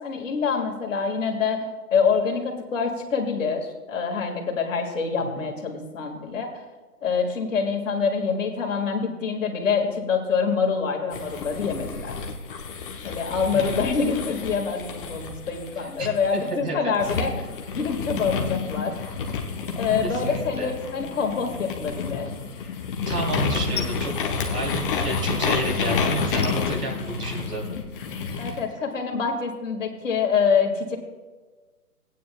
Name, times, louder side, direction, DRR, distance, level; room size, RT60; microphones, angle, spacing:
voice 1, 0.0-1.6 1.9-6.5 7.0-12.2 13.0-17.3 17.7-18.9 19.8-22.3 28.4-31.0, left 5 dB, 55° left, 2 dB, 2.1 m, -25 dB
sound 1, 11.1-16.5 17.0-28.6, left 5 dB, 35° left, 1.0 m, -29 dB
voice 2, 15.8-16.9 20.0-20.7 23.1-24.1 24.4-27.8, right 2 dB, 80° right, -2 dB, 3.4 m, -31 dB
17.5 x 9.3 x 2.3 m, 1.3 s
figure-of-eight pair, 135°, 46 cm